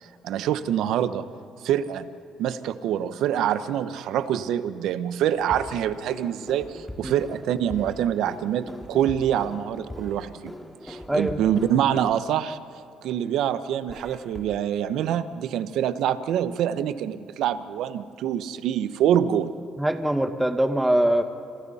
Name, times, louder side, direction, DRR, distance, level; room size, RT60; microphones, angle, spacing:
voice 1, 0.2-1.2 1.6-2.1 2.4-10.5 10.8-12.6 13.0-19.5, right 10 dB, 80° right, 12 dB, 0.9 m, -25 dB
sound 1, 5.2-12.1 13.9-14.5, left 1 dB, 10° left, 2.4 m, -41 dB
voice 2, 11.1-11.4 19.8-21.2, right 1 dB, 10° right, 6 dB, 1.8 m, -22 dB
28.0 x 26.5 x 4.3 m, 2.4 s
supercardioid pair, 70°, 0 cm